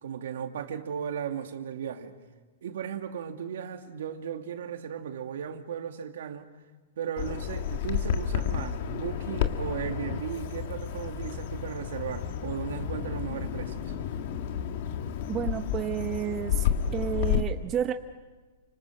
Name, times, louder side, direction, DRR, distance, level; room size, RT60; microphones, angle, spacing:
voice 1, 0.0-2.1 2.6-6.5 7.0-13.9, right 8 dB, 75° right, 2.4 m, -36 dB
Bird vocalization bird call bird song, 7.2-17.4, left 9 dB, 50° left, 1.8 m, -31 dB
voice 2, 15.3-16.6 16.9-17.9, right 9 dB, 20° right, 1.0 m, -30 dB
29.5 x 26.0 x 6.4 m
hypercardioid pair, 155°, 0 cm